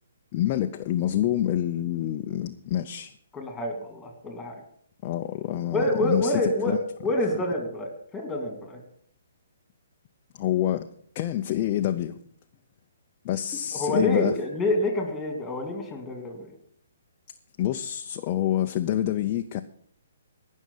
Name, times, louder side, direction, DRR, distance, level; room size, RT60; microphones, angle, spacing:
voice 1, 0.3-3.1 5.0-6.8 10.4-10.9 11.1-12.2 13.2-14.4 17.6-19.6, left 12 dB, 30° left, 0.6 m, -27 dB
voice 2, 3.3-4.6 5.7-6.8 7.0-8.8 13.7-16.5, left 1 dB, 10° left, 2.6 m, -27 dB
18.0 x 6.4 x 5.6 m
hypercardioid pair, 155°, 0 cm